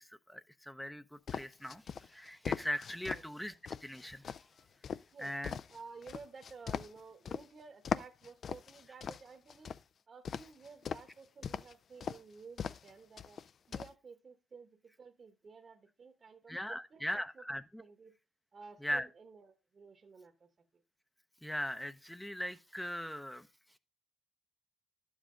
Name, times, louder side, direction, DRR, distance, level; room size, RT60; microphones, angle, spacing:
voice 1, 0.0-3.5 3.8-4.3 5.2-5.5 16.5-17.8 18.8-19.1 21.4-23.5, equal, 5° left, 0.6 m, -39 dB
sound 1, 1.3-3.2 3.7-7.4 7.8-9.8 10.2-11.1 11.4-11.7 12.0-12.2 12.6-12.9 13.2-13.9, left 7 dB, 55° left, 0.4 m, -39 dB
voice 2, 5.1-9.7 10.1-13.4 13.7-17.4 17.8-18.2 18.5-20.8, right 5 dB, 45° right, 1.1 m, -53 dB
11.0 x 7.3 x 3.8 m
cardioid pair, 90°, 0 cm